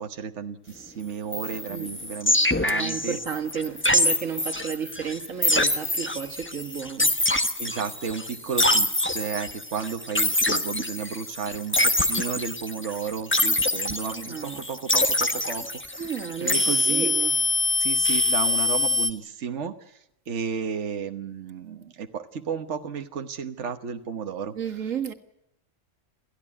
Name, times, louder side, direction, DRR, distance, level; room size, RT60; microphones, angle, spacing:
voice 1, 0.0-2.3 2.6-3.2 7.6-16.1 16.4-17.1 17.8-20.0 20.3-24.5, right 6 dB, 65° right, 1.4 m, -33 dB
sound 1, 1.3-19.1, left 2 dB, 10° left, 1.1 m, -25 dB
voice 2, 2.7-7.2 14.1-14.6 16.0-17.4 24.5-25.1, right 7 dB, 90° right, 2.1 m, -33 dB
28.0 x 15.0 x 10.0 m
omnidirectional pair, 1.3 m